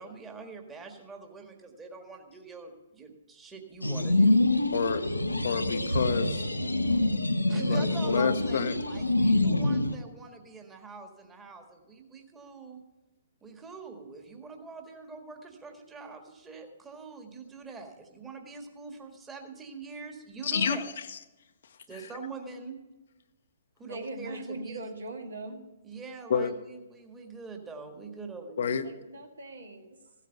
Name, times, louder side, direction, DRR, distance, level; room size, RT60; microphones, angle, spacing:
voice 1, 0.0-4.7 7.5-12.8 13.4-21.0 21.9-22.8 23.8-24.8 25.8-28.9, right 4 dB, 10° right, 3 dB, 1.7 m, -44 dB
sound 1, 3.8-9.9, left 2 dB, 85° left, 1.0 m, -26 dB
voice 2, 4.7-5.0 5.4-6.4 7.7-8.7 20.4-20.8 26.3-26.5 28.6-28.8, left 6 dB, 55° left, 9 dB, 0.9 m, -28 dB
voice 3, 23.9-25.6 28.8-30.1, right 2 dB, 70° right, 4 dB, 2.0 m, -40 dB
15.5 x 8.3 x 6.6 m, 1.1 s
figure-of-eight pair, 120°, 0 cm